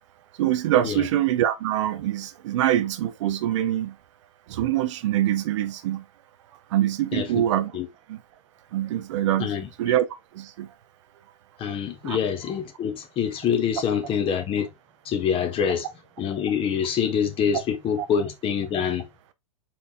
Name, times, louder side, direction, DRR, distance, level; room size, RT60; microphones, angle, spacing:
voice 1, 0.4-3.9 4.5-6.0 6.7-7.7 8.1-8.2 8.7-9.5 9.8-10.1 10.3-10.7 12.0-12.2, right 12 dB, 60° right, 0.8 m, -24 dB
voice 2, 7.1-7.4 7.7-7.9 9.4-9.7 11.6-14.7 15.0-15.9 16.2-19.1, left 7 dB, 30° left, 1.1 m, -25 dB
4.5 x 4.1 x 2.8 m
hypercardioid pair, 110°, 17 cm